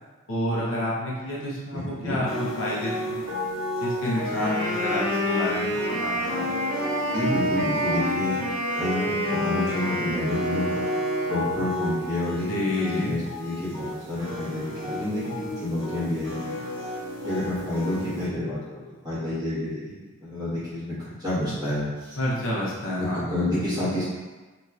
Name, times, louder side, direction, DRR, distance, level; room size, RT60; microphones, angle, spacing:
voice 1, 0.3-3.4 3.8-6.5 12.5-13.2 22.2-23.3, left 1 dB, 65° left, -6 dB, 0.7 m, -29 dB
voice 2, 1.7-2.2 7.1-8.4 8.8-10.7 11.3-16.6 17.2-19.9 20.2-20.9 21.2-22.1 23.3-24.0, left 1 dB, 20° right, -13 dB, 1.3 m, -29 dB
sound 1, 2.3-18.3, left 1 dB, 65° right, 1.2 m, -34 dB
Wind instrument woodwind instrument, 4.1-11.8, equal, 45° right, 0.7 m, -28 dB
3.0 x 2.8 x 2.4 m, 1.3 s
head